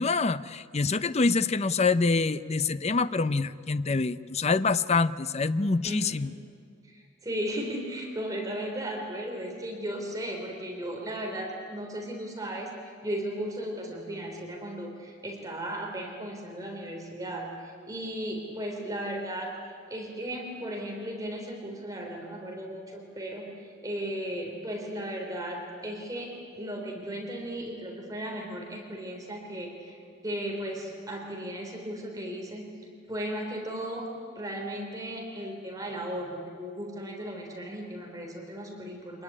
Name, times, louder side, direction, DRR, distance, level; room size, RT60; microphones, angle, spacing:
voice 1, 0.0-6.3, left 4 dB, 35° left, 14 dB, 0.6 m, -26 dB
voice 2, 5.8-6.2 6.8-19.5 19.9-32.7 33.1-34.1 34.3-39.2, right 1 dB, 20° right, 0 dB, 3.5 m, -36 dB
25.5 x 20.5 x 9.9 m, 2.3 s
head